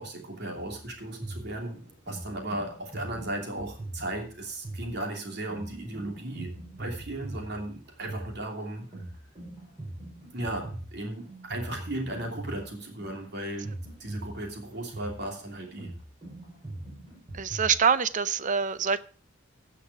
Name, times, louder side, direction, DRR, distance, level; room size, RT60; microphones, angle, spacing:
voice 1, 0.0-8.9 10.3-13.7 14.0-15.9, right 1 dB, 60° right, 2 dB, 2.9 m, -36 dB
sound 1, 0.6-17.8, right 1 dB, 25° right, 6.0 m, -42 dB
voice 2, 17.3-19.0, right 6 dB, 40° right, 15 dB, 0.6 m, -25 dB
16.5 x 5.9 x 4.8 m, 0.41 s
head